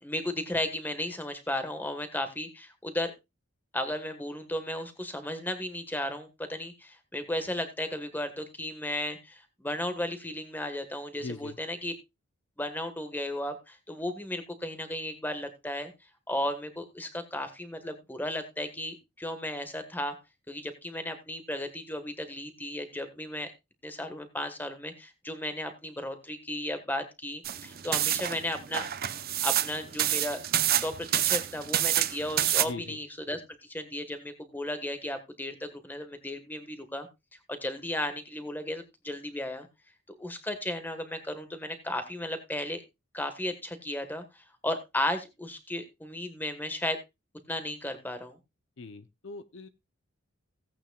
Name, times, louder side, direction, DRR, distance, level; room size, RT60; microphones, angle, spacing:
voice 1, 0.0-3.1 3.7-11.9 12.6-15.9 16.3-20.2 20.5-23.5 23.8-28.9 29.4-30.4 30.8-37.1 37.5-39.7 40.1-42.8 43.1-47.0 47.5-48.4, left 1 dB, 10° left, 8 dB, 1.3 m, -35 dB
voice 2, 11.2-11.6 32.6-33.0 48.8-49.7, left 3 dB, 60° left, 12 dB, 0.6 m, -40 dB
sound 1, 27.4-32.6, right 12 dB, 45° right, 0.7 m, -27 dB
17.0 x 8.9 x 2.3 m, 0.23 s
head